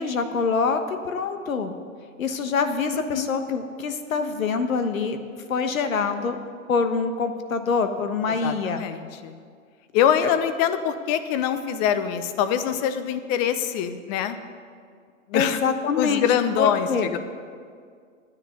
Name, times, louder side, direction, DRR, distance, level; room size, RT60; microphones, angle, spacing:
voice 1, 0.0-1.7 2.2-5.2 5.5-6.4 6.7-8.8 15.3-16.2 16.6-17.1, left 5 dB, 90° left, 8 dB, 1.3 m, -25 dB
voice 2, 2.9-3.3 8.3-9.4 9.9-14.4 15.3-15.6 16.0-17.2, left 9 dB, 35° left, 11 dB, 0.8 m, -24 dB
10.0 x 9.8 x 6.8 m, 2.1 s
hypercardioid pair, 130°, 40 cm